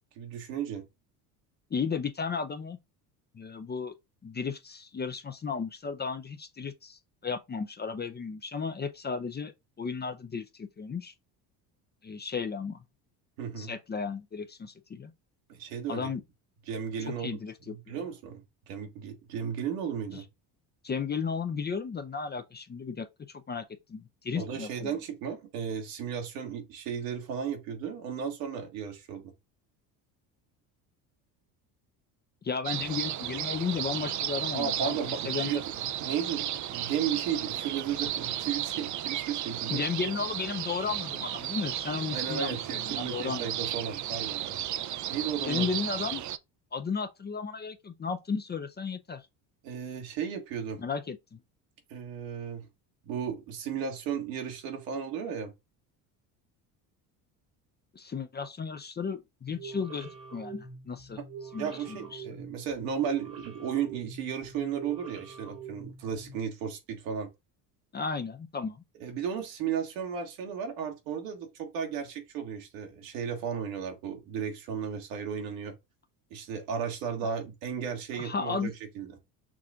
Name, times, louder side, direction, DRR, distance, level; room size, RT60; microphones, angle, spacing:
voice 1, 0.2-0.9 13.4-13.7 15.5-16.1 16.7-17.4 17.7-20.2 24.3-29.3 34.5-35.7 36.0-39.8 42.1-44.7 45.1-45.7 49.6-50.8 51.9-52.7 53.0-55.5 61.6-67.3 69.0-75.8 76.3-79.2, right 7 dB, 80° right, 1.6 m, -34 dB
voice 2, 1.7-2.8 3.3-3.9 4.2-9.5 9.8-11.1 12.0-12.8 13.6-15.1 15.9-16.2 17.2-18.0 20.1-20.2 20.8-23.6 23.9-24.9 32.4-35.0 35.2-35.5 39.7-43.5 45.5-46.2 46.7-49.2 50.8-51.4 57.9-61.2 61.5-62.2 67.9-68.8 78.1-78.7, left 5 dB, 20° left, 0.5 m, -34 dB
sound 1, 32.6-46.4, right 11 dB, 40° right, 0.5 m, -34 dB
sound 2, 59.5-66.4, right 5 dB, 60° right, 1.6 m, -45 dB
6.1 x 2.4 x 3.6 m
hypercardioid pair, 70°, 49 cm